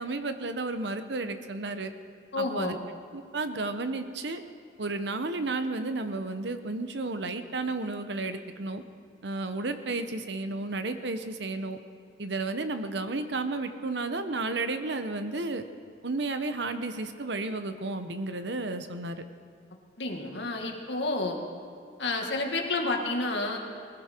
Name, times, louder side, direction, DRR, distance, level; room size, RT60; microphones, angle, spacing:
voice 1, 0.0-1.9 2.4-2.7 3.1-4.4 4.8-8.8 9.2-11.8 12.2-15.6 16.0-19.2, right 3 dB, 70° right, 9 dB, 1.0 m, -32 dB
voice 2, 2.3-2.8 20.0-21.4 22.0-23.6, left 2 dB, 70° left, 2 dB, 2.0 m, -30 dB
20.5 x 15.5 x 4.5 m, 2.4 s
head